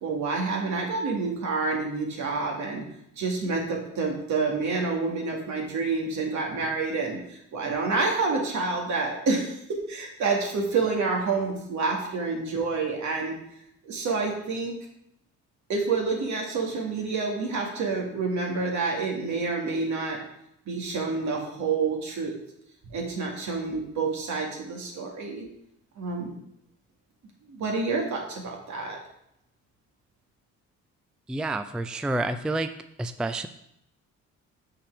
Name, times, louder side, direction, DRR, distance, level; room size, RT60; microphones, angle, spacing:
voice 1, 0.0-2.8 3.2-13.4 13.8-14.7 15.7-20.2 20.7-22.4 22.9-25.4 26.0-26.3 27.5-29.0, right 4 dB, 70° right, 0 dB, 2.1 m, -28 dB
voice 2, 31.3-32.7 33.0-33.5, right 2 dB, 5° right, 10 dB, 0.3 m, -28 dB
6.6 x 5.9 x 4.8 m, 0.77 s
cardioid pair, 90°, 30 cm